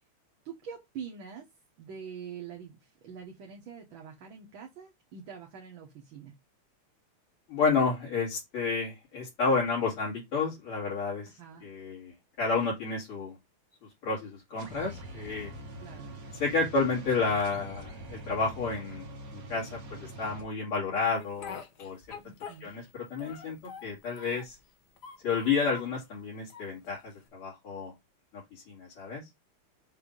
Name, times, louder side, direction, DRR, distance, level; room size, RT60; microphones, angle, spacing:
voice 1, 0.5-1.5 1.8-6.3 11.3-11.7 15.8-16.2 22.2-22.7, right 7 dB, 70° right, 1.9 m, -45 dB
voice 2, 7.5-11.3 11.6-13.3 14.0-15.5 16.4-19.1 19.3-22.0 22.6-24.6 25.2-27.9 28.3-29.2, left 4 dB, 75° left, 3.1 m, -31 dB
sound 1, 14.6-20.4, right 1 dB, 45° right, 1.7 m, -44 dB
Speech, 21.1-22.9 23.2-24.6 25.0-25.9 26.5-27.3, left 7 dB, 55° left, 1.5 m, -46 dB
6.6 x 2.7 x 5.3 m
omnidirectional pair, 2.4 m